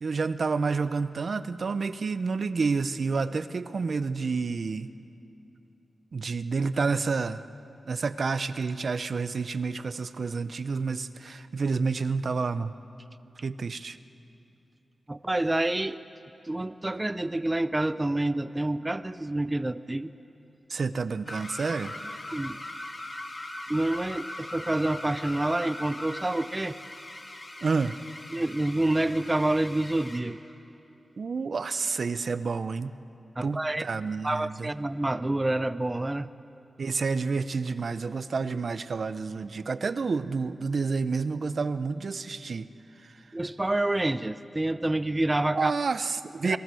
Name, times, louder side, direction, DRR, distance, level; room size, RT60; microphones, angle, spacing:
voice 1, 0.0-4.9 6.1-7.4 7.9-12.7 13.4-14.0 20.7-21.9 27.6-28.0 31.2-32.9 33.4-34.7 36.8-42.7 43.0-43.1 45.4-46.6, right 4 dB, 60° right, 13 dB, 0.7 m, -29 dB
voice 2, 15.1-16.0 16.4-20.1 22.3-22.6 23.7-26.8 28.3-30.4 33.4-33.9 34.2-36.3 43.3-45.7 46.4-46.6, right 1 dB, 20° right, 12 dB, 0.5 m, -28 dB
sound 1, 21.3-30.3, left 1 dB, 35° left, 2.3 m, -40 dB
28.5 x 21.0 x 7.7 m, 2.7 s
wide cardioid pair, 85°, 0 cm